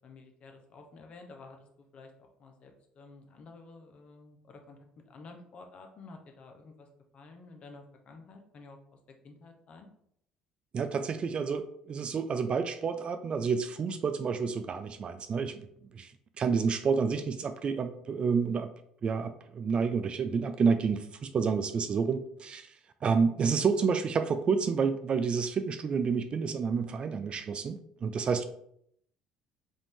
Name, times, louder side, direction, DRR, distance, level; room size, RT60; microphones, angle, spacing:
voice 1, 0.0-6.9 7.1-8.8 9.2-9.9, left 3 dB, 50° left, 4 dB, 0.9 m, -51 dB
voice 2, 10.7-15.7 15.9-16.1 16.4-18.7 19.0-22.7 23.0-28.4, right 5 dB, 40° right, 9 dB, 0.4 m, -29 dB
5.3 x 2.6 x 3.6 m, 0.70 s
supercardioid pair, 75°, 3 cm